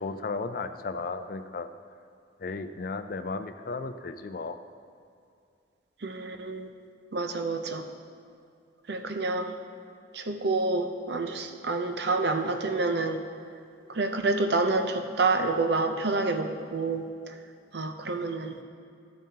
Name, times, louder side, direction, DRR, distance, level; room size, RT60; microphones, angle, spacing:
voice 1, 0.0-1.7 2.4-4.6, left 3 dB, 50° left, 9 dB, 0.4 m, -34 dB
voice 2, 6.0-6.7 7.1-7.8 8.9-9.5 10.1-13.2 13.9-17.1 17.7-18.6, right 3 dB, 60° right, 6 dB, 0.6 m, -28 dB
12.5 x 7.2 x 2.8 m, 2.4 s
head